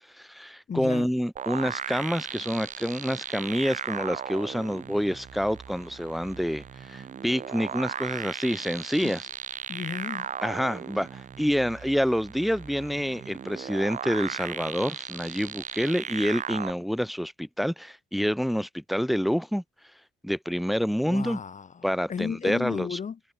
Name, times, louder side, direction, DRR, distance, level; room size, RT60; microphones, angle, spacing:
voice 1, 0.2-9.2 10.4-19.6 20.2-21.4 21.8-23.0, equal, ahead, 1.4 m, -28 dB
voice 2, 0.7-1.1 9.0-9.2 9.7-10.4 21.0-23.2, left 6 dB, 40° left, 1.2 m, -34 dB
sound 1, 1.4-16.7, right 7 dB, 40° right, 0.7 m, -36 dB
cardioid pair, 90°, 20 cm